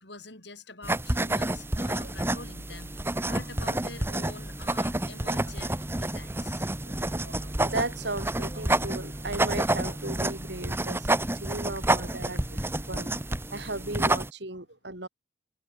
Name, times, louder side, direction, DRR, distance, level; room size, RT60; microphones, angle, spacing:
voice 1, 0.0-6.7 12.8-13.0, left 3 dB, 65° left, 7.2 m, -46 dB
sound 1, 0.8-14.3, right 1 dB, 10° right, 1.2 m, -29 dB
voice 2, 6.9-13.2 13.5-15.1, right 2 dB, 65° right, 3.8 m, -36 dB
head